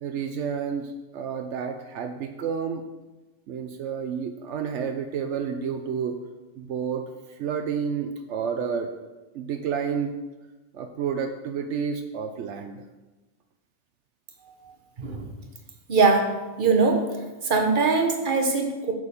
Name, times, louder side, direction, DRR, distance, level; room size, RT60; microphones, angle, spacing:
voice 1, 0.0-2.8 3.5-6.2 6.6-7.0 7.3-8.9 9.3-10.1 10.7-12.8, right 6 dB, 80° right, 6 dB, 1.0 m, -30 dB
voice 2, 15.9-17.1 17.4-18.9, right 4 dB, 45° right, 3 dB, 1.2 m, -22 dB
8.3 x 6.5 x 5.1 m, 1.1 s
omnidirectional pair, 1.2 m